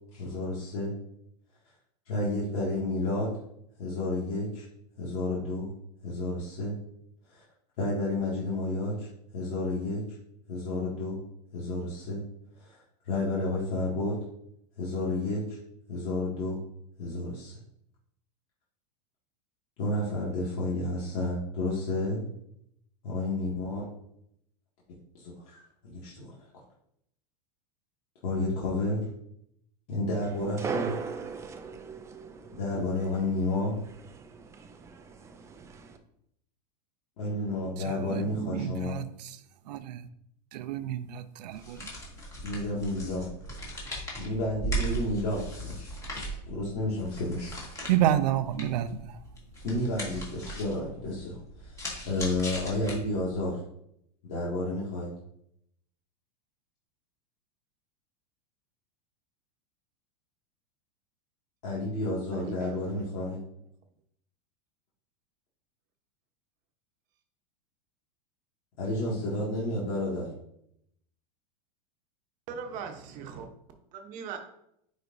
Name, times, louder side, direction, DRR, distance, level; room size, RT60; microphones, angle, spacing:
voice 1, 0.1-0.9 2.1-3.3 3.8-4.6 5.0-5.7 6.0-6.7 7.3-7.4 7.8-9.1 9.3-10.0 10.5-11.2 11.5-12.2 12.6-12.8 13.0-14.2 14.8-15.6 15.9-16.6 17.0-17.6 19.8-22.2 23.0-23.8 25.1-25.6 25.9-26.3 28.2-29.0 29.9-30.9 32.6-33.8 37.2-39.0 42.4-43.3 44.2-45.9 46.5-47.5 49.6-51.8 52.1-53.6 54.2-55.1 61.6-63.4 68.8-70.3, left 2 dB, 55° left, -7 dB, 2.1 m, -31 dB
sound 1, 30.2-36.0, right 6 dB, 15° right, 0.4 m, -39 dB
voice 2, 37.8-39.4 39.7-40.1 40.5-41.8 47.9-49.2, right 11 dB, 75° right, 13 dB, 0.6 m, -30 dB
sound 2, 41.5-53.4, right 2 dB, 15° left, 1.8 m, -38 dB
voice 3, 62.3-63.1 72.5-73.5 73.9-74.4, right 6 dB, 40° right, 5 dB, 1.0 m, -40 dB
9.3 x 4.2 x 2.7 m, 0.74 s
supercardioid pair, 145°, 21 cm